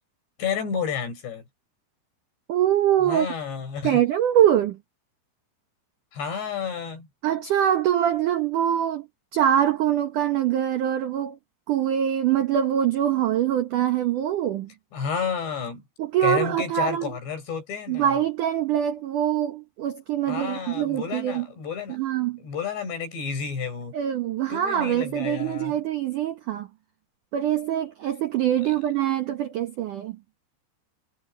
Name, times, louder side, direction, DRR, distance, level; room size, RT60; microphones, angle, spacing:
voice 1, 0.4-1.4 3.0-4.0 6.1-7.1 14.9-15.8 16.2-18.2 20.3-22.0 22.4-24.0 24.5-25.7, left 6 dB, 65° left, 7.0 m, -31 dB
voice 2, 2.5-3.3 3.8-4.8 7.2-11.4 11.7-14.7 16.0-17.1 17.9-21.5 21.9-22.4 23.9-26.7 27.3-30.2, right 10 dB, 70° right, 1.9 m, -24 dB
omnidirectional pair, 5.4 m